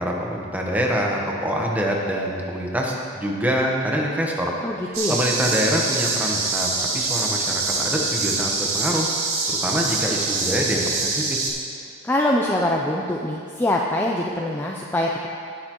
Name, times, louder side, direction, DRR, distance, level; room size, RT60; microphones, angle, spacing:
voice 1, 0.0-4.5 5.1-9.1 9.5-11.4, equal, 5° right, -1 dB, 0.9 m, -25 dB
voice 2, 4.6-5.2 12.0-15.3, left 1 dB, 10° left, -1 dB, 0.4 m, -23 dB
sound 1, 4.9-11.5, right 3 dB, 90° right, 1.6 m, -25 dB
18.0 x 6.7 x 3.0 m, 2.4 s
head